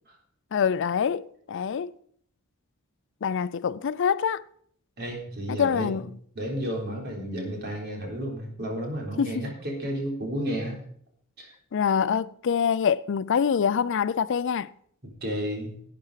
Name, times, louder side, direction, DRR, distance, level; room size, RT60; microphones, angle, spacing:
voice 1, 0.5-1.9 3.2-4.4 5.5-6.0 9.2-9.3 11.7-14.7, left 7 dB, 55° left, 0.4 m, -25 dB
voice 2, 5.0-6.0 6.4-10.8 11.4-11.5 15.0-15.7, equal, 50° right, 3.8 m, -32 dB
12.0 x 8.7 x 4.8 m
head